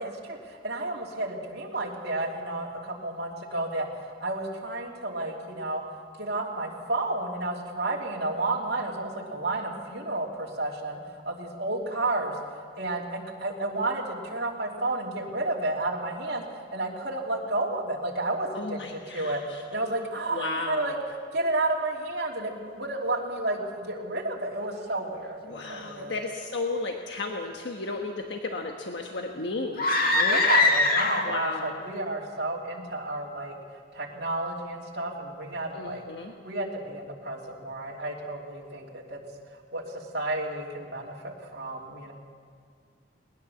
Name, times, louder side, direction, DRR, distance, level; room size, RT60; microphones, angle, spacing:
voice 1, 0.0-5.8 6.2-12.4 12.8-16.4 16.7-20.9 21.3-26.2 30.1-33.5 33.9-36.0 36.4-39.2 39.7-42.1, right 2 dB, 60° right, -3 dB, 3.1 m, -31 dB
voice 2, 18.5-19.6 20.3-21.0 25.5-30.4 31.2-31.8 35.7-36.3, left 3 dB, 65° left, 2 dB, 1.4 m, -34 dB
sound 1, 29.7-31.5, left 3 dB, 50° left, 2.0 m, -22 dB
20.0 x 19.5 x 7.2 m, 2.2 s
head